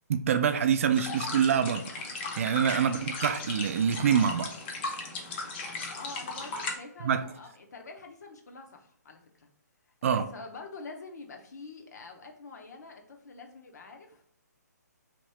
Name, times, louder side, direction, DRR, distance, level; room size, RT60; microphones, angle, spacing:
voice 1, 0.1-4.5 7.0-7.2 10.0-10.3, right 7 dB, 50° right, 0.3 m, -26 dB
sound 1, 0.9-6.8, left 3 dB, 35° left, 0.6 m, -37 dB
voice 2, 5.9-9.5 10.1-14.2, left 3 dB, 65° left, 0.7 m, -46 dB
2.9 x 2.6 x 3.2 m
hypercardioid pair, 140°, 10 cm